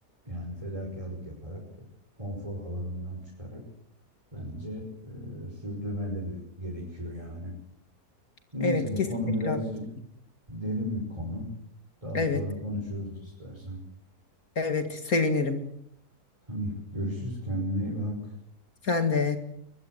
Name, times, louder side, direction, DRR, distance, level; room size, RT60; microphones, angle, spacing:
voice 1, 0.3-1.6 2.2-3.6 4.3-7.5 8.5-9.8 10.5-11.5 12.0-13.8 16.5-18.3, equal, 20° right, -1 dB, 5.7 m, -34 dB
voice 2, 14.6-15.6 18.9-19.4, left 4 dB, 60° left, 7 dB, 2.5 m, -26 dB
23.5 x 22.0 x 8.0 m, 0.73 s
omnidirectional pair, 1.7 m